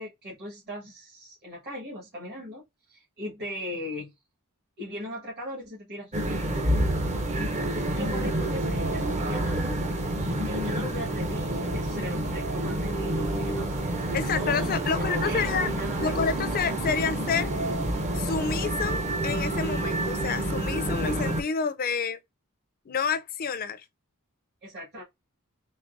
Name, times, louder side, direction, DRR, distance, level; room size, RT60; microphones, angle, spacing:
voice 1, 0.0-4.1 4.8-6.2 7.9-9.9 10.4-16.2 24.6-25.0, left 1 dB, 45° right, 1.5 m, -39 dB
sound 1, 6.1-21.4, right 1 dB, 30° right, 0.6 m, -28 dB
voice 2, 14.1-15.7 16.0-17.5 18.1-22.2 22.9-23.8, left 6 dB, 40° left, 0.4 m, -29 dB
3.8 x 3.0 x 2.5 m
head